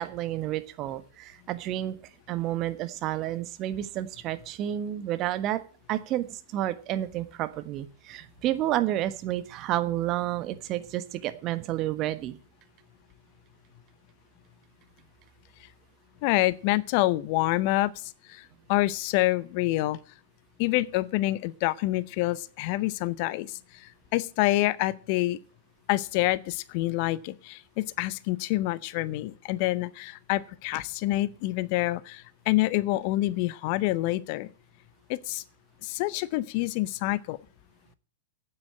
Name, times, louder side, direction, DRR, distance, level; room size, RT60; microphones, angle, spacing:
voice 1, 0.0-1.9 2.3-5.6 5.9-12.4, right 13 dB, 40° right, 1.3 m, -30 dB
voice 2, 16.2-20.0 20.6-25.4 25.9-34.5 35.1-35.4 35.8-37.4, left 18 dB, 50° left, 0.7 m, -27 dB
9.0 x 8.3 x 8.7 m
hypercardioid pair, 110°, 0 cm